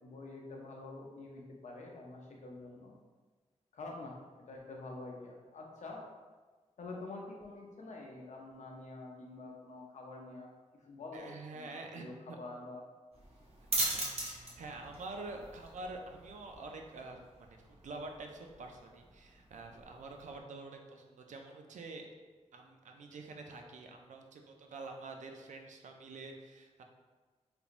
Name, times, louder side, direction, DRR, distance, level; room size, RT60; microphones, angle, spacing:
voice 1, 0.0-2.9 3.7-4.2 4.5-6.0 6.8-10.5 10.8-12.8, left 2 dB, 75° left, -1 dB, 0.6 m, -47 dB
voice 2, 11.1-12.4 13.7-22.1 22.5-26.8, right 3 dB, 80° right, 3 dB, 0.4 m, -47 dB
sound 1, 13.1-20.4, right 2 dB, 55° right, 0.7 m, -41 dB
3.4 x 2.9 x 2.5 m, 1.4 s
wide cardioid pair, 110°, 12 cm